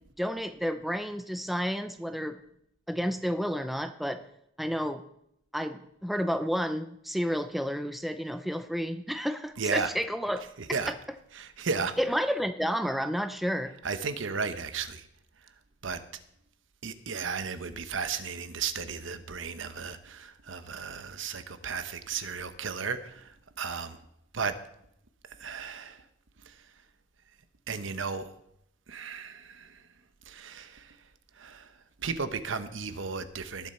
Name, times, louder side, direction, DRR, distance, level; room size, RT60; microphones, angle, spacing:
voice 1, 0.2-2.4 2.9-4.2 4.6-5.0 5.5-10.4 10.9-11.0 12.0-13.7, equal, ahead, 9 dB, 0.5 m, -31 dB
voice 2, 9.6-9.9 10.4-10.9 11.3-12.2 13.8-15.1 15.8-16.0 16.8-24.0 24.3-24.6 25.4-26.0 26.4-26.6 27.7-28.3 28.9-29.8 30.2-31.0 31.3-31.7 32.0-33.7, right 5 dB, 70° right, 11 dB, 0.9 m, -34 dB
18.5 x 7.1 x 4.4 m, 0.75 s
head